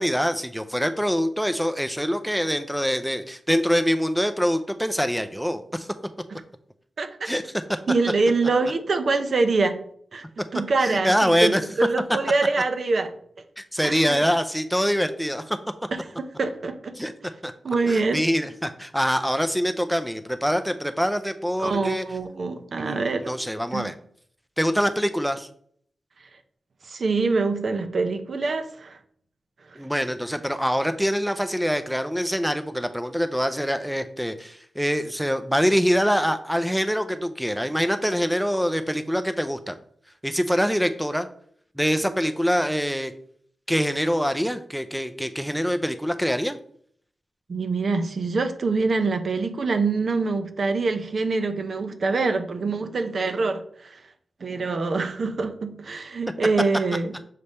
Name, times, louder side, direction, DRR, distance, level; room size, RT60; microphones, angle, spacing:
voice 1, 0.0-5.9 7.2-7.5 10.8-11.6 13.6-15.6 17.0-17.1 17.4-17.5 17.9-22.0 22.8-23.9 24.6-25.5 29.8-39.8 40.2-41.3 41.8-43.1 43.7-46.6, equal, ahead, 0.4 m, -24 dB
voice 2, 7.0-7.3 7.9-9.8 10.1-10.2 10.5-13.1 13.8-14.2 15.9-16.9 17.6-18.2 21.6-23.3 23.7-23.9 26.8-29.0 29.7-29.8 47.5-54.0 54.4-57.1, right 3 dB, 65° right, 0.7 m, -25 dB
6.7 x 3.3 x 4.2 m
cardioid pair, 65°, 0 cm